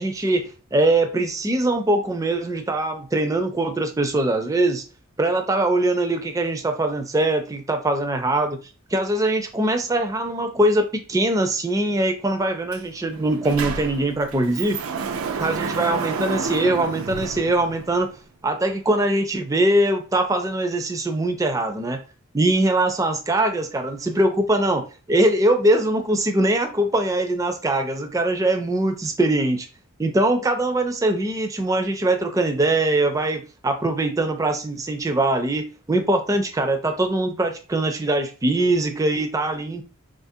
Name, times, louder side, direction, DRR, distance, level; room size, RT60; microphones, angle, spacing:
voice 1, 0.0-4.8 5.2-8.6 8.9-14.8 15.4-18.1 18.4-22.0 22.3-29.7 30.0-39.8, right 1 dB, 15° right, 0.3 m, -22 dB
Sliding door, 12.7-12.8 13.1-18.1, right 5 dB, 85° right, 0.4 m, -30 dB
3.9 x 2.4 x 2.6 m
head